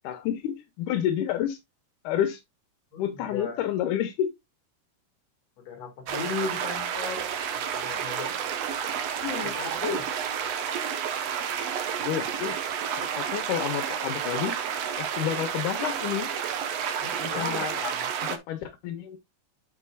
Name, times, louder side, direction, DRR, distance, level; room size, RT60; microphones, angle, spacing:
voice 1, 0.0-1.6 2.0-2.4 3.0-4.3 9.2-9.6 12.0-12.6 13.0-14.5 15.0-16.3 17.2-17.8 18.5-19.2, left 10 dB, 80° left, 2.3 m, -29 dB
voice 2, 2.9-3.6 5.6-8.4 9.4-10.1 17.0-18.0, left 5 dB, 55° left, 3.0 m, -36 dB
sound 1, 6.1-18.4, right 8 dB, 65° right, 1.8 m, -30 dB
9.7 x 6.3 x 2.3 m
omnidirectional pair, 3.7 m